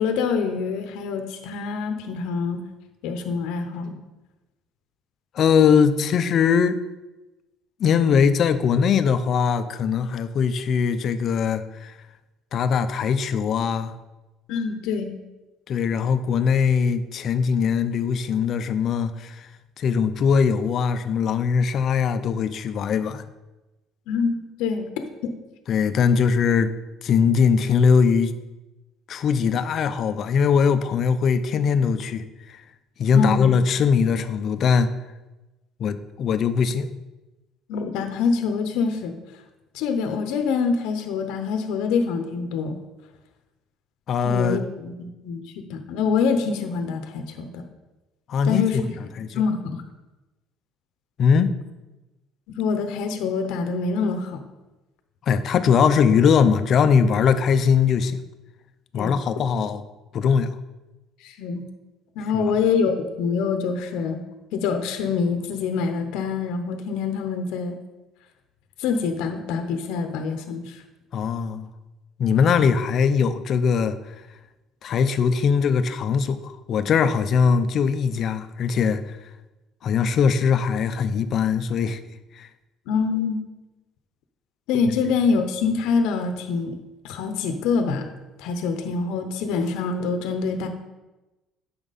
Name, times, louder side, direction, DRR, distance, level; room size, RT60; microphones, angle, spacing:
voice 1, 0.0-2.6 3.0-4.0 14.5-15.1 24.1-25.3 33.1-33.6 37.7-39.1 39.7-42.8 44.2-45.4 45.7-47.6 48.4-48.9 49.3-49.8 52.5-54.4 58.9-59.2 61.2-61.6 62.2-64.2 64.5-67.8 68.8-70.8 82.9-83.4 84.7-86.8 87.0-88.1 88.4-90.7, left 5 dB, 80° left, 7 dB, 0.8 m, -25 dB
voice 2, 5.3-6.8 7.8-11.9 12.5-13.9 15.7-19.4 19.8-23.2 25.7-26.7 27.0-28.3 29.1-32.2 32.5-32.6 33.0-34.9 35.8-36.9 44.1-44.6 48.3-48.8 49.2-49.4 51.2-51.5 55.3-58.2 58.9-59.8 60.1-60.5 62.3-62.4 71.1-71.7 72.2-74.0 74.8-79.2 79.8-82.0 82.3-82.5 84.9-85.0, left 6 dB, 50° left, 11 dB, 0.6 m, -21 dB
9.0 x 6.0 x 4.1 m, 1.1 s
cardioid pair, 105°, 0 cm